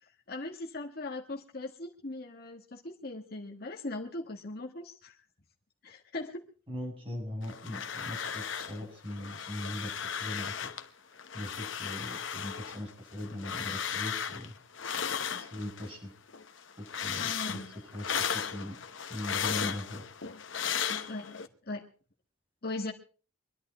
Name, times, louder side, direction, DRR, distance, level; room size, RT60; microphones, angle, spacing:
voice 1, 0.0-5.2 5.8-6.4 17.2-17.7 21.1-21.3 21.7-21.9 22.6-22.9, left 2 dB, 50° left, 0 dB, 1.5 m, -39 dB
voice 2, 6.7-9.9 10.2-10.7 11.3-14.5 15.4-16.1 16.8-17.6 17.9-18.8 19.1-20.0, left 1 dB, 25° right, 0 dB, 7.0 m, -40 dB
sound 1, 7.4-8.8 9.1-10.9 11.2-15.9 16.3-21.5, left 7 dB, 65° left, 1.1 m, -36 dB
24.0 x 11.0 x 4.3 m, 0.39 s
head